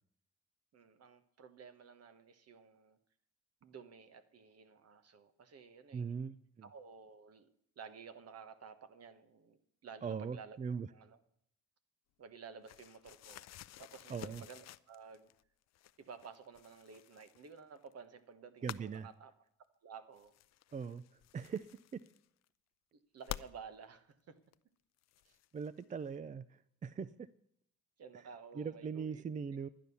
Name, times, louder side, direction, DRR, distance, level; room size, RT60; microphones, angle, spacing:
voice 1, 0.7-3.0 3.6-6.1 6.6-7.5 7.8-10.6 10.9-11.2 12.2-13.5 13.8-15.3 16.0-19.3 19.8-20.3 22.9-24.4 28.0-29.2, right 6 dB, 55° right, 11 dB, 1.3 m, -53 dB
voice 2, 5.9-6.7 10.0-10.9 14.1-14.4 18.6-19.1 20.7-21.0 21.3-22.0 25.5-27.3 28.6-29.7, right 6 dB, 25° right, 16 dB, 0.4 m, -41 dB
sound 1, 12.7-15.4 15.7-17.9 18.6-19.0 20.1-22.5 23.2-23.5 24.5-24.6 25.0-25.8, left 14 dB, 60° left, 0.5 m, -50 dB
11.5 x 9.5 x 7.0 m, 0.72 s
cardioid pair, 90°, 30 cm